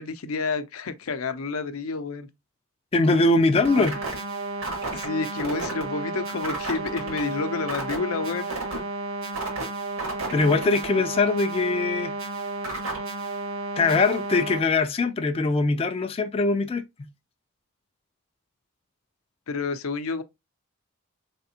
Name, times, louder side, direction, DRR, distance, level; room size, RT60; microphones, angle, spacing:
voice 1, 0.0-2.3 3.8-3.9 4.9-8.7 19.5-20.2, left 4 dB, 85° left, 0.6 m, -29 dB
voice 2, 2.9-3.9 10.3-12.1 13.8-16.8, left 3 dB, 25° left, 0.3 m, -22 dB
sound 1, 3.6-14.6, right 3 dB, 80° right, 1.7 m, -32 dB
4.0 x 3.4 x 2.8 m
head